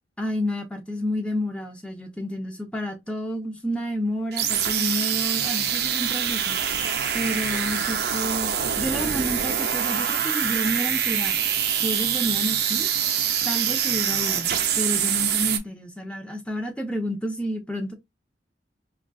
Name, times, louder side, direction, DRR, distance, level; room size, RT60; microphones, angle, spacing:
voice 1, 0.2-6.6 7.1-11.4 11.8-12.9 13.4-17.9, equal, 5° left, 0.5 m, -30 dB
sound 1, 4.3-15.6, right 8 dB, 60° right, 0.5 m, -25 dB
3.8 x 2.3 x 2.2 m
head